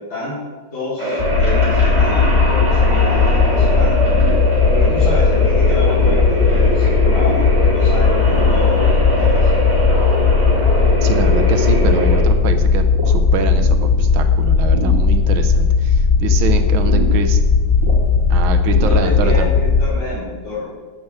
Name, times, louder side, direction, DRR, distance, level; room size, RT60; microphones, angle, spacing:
voice 1, 0.7-3.9 4.7-7.4 7.7-9.5 18.8-20.7, left 3 dB, 70° left, -11 dB, 4.7 m, -28 dB
sound 1, 1.0-12.2, equal, 15° right, 2.5 m, -22 dB
sound 2, 1.2-19.9, left 5 dB, 40° left, 0.8 m, -15 dB
sound 3, 3.7-19.8, right 3 dB, 60° right, 3.4 m, -33 dB
voice 2, 11.0-17.4 18.3-19.5, right 6 dB, 85° right, 8 dB, 1.7 m, -25 dB
10.5 x 7.8 x 6.3 m, 1.4 s
omnidirectional pair, 2.2 m